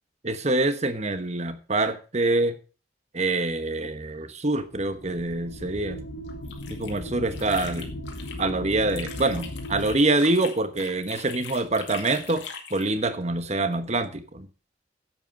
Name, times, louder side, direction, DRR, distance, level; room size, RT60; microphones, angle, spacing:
voice 1, 0.2-2.6 3.1-6.0 6.7-7.9 8.4-12.4 12.7-14.5, right 2 dB, 40° right, 11 dB, 1.2 m, -25 dB
sound 1, 4.6-9.9, equal, 65° left, 2.1 m, -37 dB
sound 2, 6.3-8.4 8.7-12.9, left 6 dB, 90° left, 2.3 m, -41 dB
11.0 x 8.0 x 5.3 m, 0.36 s
head